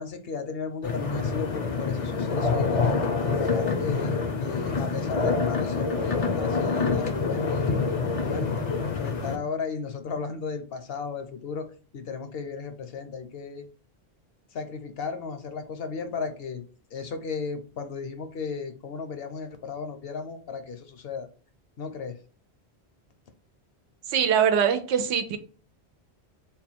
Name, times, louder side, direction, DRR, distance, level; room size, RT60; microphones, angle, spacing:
voice 1, 0.0-2.8 3.2-7.6 8.2-8.5 8.8-11.7 11.9-13.6 14.5-16.6 16.9-21.3 21.8-22.1, left 5 dB, 65° left, 8 dB, 0.8 m, -35 dB
sound 1, 0.8-9.4, left 4 dB, 45° left, 0.5 m, -26 dB
voice 2, 24.1-25.4, right 8 dB, 90° right, 10 dB, 0.9 m, -23 dB
3.6 x 2.2 x 4.2 m, 0.40 s
omnidirectional pair, 1.1 m